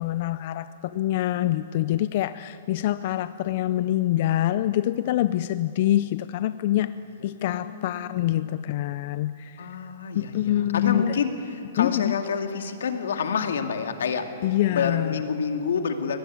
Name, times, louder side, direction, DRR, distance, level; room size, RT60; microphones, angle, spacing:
voice 1, 0.0-6.9 7.2-9.7 10.1-11.1 11.8-12.1 14.4-15.2, left 13 dB, 45° left, 14 dB, 0.5 m, -25 dB
voice 2, 7.5-8.1 9.6-14.3 14.7-16.2, left 6 dB, 85° left, 6 dB, 2.2 m, -28 dB
23.5 x 18.5 x 9.5 m, 2.7 s
hypercardioid pair, 160°, 0 cm